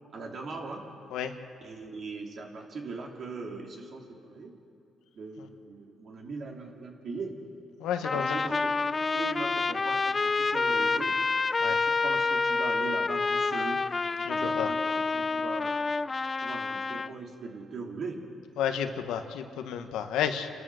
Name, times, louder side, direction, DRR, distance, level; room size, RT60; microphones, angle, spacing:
voice 1, 0.1-0.8 1.6-4.6 5.1-7.3 8.1-11.2 11.6-13.8 14.4-15.7 16.4-18.2, right 3 dB, 55° right, 0 dB, 3.3 m, -40 dB
voice 2, 7.8-8.4 11.6-11.8 14.2-14.7 18.6-20.5, left 9 dB, 90° left, 7 dB, 1.2 m, -31 dB
Trumpet, 8.0-17.1, left 4 dB, 30° left, 0.5 m, -28 dB
29.0 x 14.0 x 6.4 m, 2.5 s
cardioid pair, 90°, 0 cm